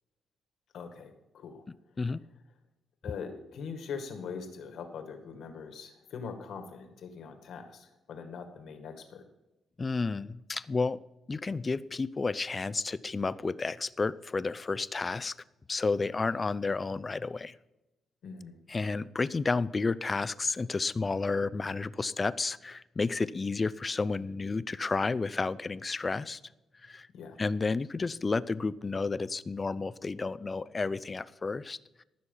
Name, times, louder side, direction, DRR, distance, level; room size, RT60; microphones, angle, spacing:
voice 1, 0.7-1.6 3.0-9.2 18.2-18.6 27.1-27.4, left 6 dB, 75° left, 6 dB, 1.9 m, -42 dB
voice 2, 9.8-11.0 11.3-15.3 15.7-17.5 18.7-26.4 26.8-27.1 27.4-31.8, left 3 dB, 30° left, 17 dB, 0.4 m, -31 dB
14.5 x 6.5 x 5.6 m, 0.99 s
cardioid pair, 100°, 0 cm